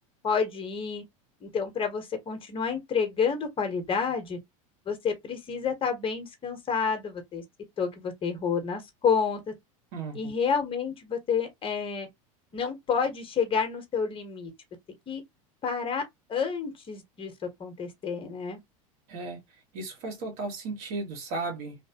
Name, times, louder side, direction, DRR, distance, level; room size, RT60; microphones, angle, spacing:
voice 1, 0.2-1.0 1.4-4.4 4.9-7.4 7.8-9.5 10.1-12.1 12.5-14.5 15.1-15.2 15.6-16.0 16.3-17.3 17.6-18.6, left 6 dB, 30° left, 1.2 m, -29 dB
voice 2, 9.9-10.3 19.1-19.4 19.7-21.8, right 3 dB, 65° right, 2.0 m, -35 dB
3.3 x 2.8 x 2.9 m
supercardioid pair, 110°, 19 cm